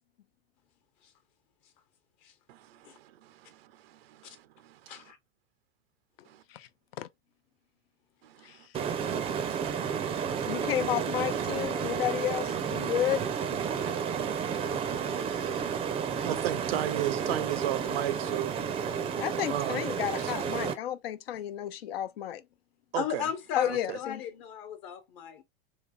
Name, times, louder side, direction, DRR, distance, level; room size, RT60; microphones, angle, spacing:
voice 1, 2.5-4.9 6.3-6.4 8.2-8.7 16.2-18.6 19.5-19.9 20.2-20.3 22.9-23.3 23.6-24.0, right 13 dB, 85° right, 0.5 m, -35 dB
sound 1, 8.7-20.7, right 7 dB, 20° right, 0.4 m, -31 dB
voice 2, 10.5-13.2 15.3-15.6 19.2-22.4 23.6-24.2, left 11 dB, 85° left, 0.6 m, -32 dB
voice 3, 22.9-25.4, left 9 dB, 55° left, 1.1 m, -36 dB
3.4 x 2.9 x 2.4 m
supercardioid pair, 130°, 29 cm